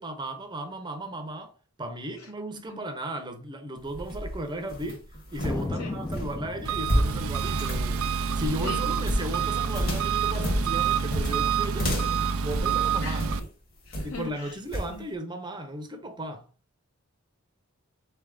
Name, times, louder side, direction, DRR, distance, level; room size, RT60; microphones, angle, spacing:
voice 1, 0.0-5.1 5.3-8.1 8.3-13.3 14.0-16.5, right 1 dB, 20° right, 0.7 m, -36 dB
sound 1, 3.8-13.5 13.9-14.3 14.7-15.0, equal, 45° left, 1.4 m, -31 dB
Thunder, 5.4-10.3 10.5-10.6 10.8-11.4 11.9-13.0, left 2 dB, 15° left, 0.3 m, -38 dB
Engine, 6.6-13.4, right 6 dB, 90° right, 0.5 m, -27 dB
voice 2, 13.9-14.5 14.9-15.1, left 5 dB, 80° left, 1.3 m, -39 dB
4.0 x 3.4 x 3.7 m
head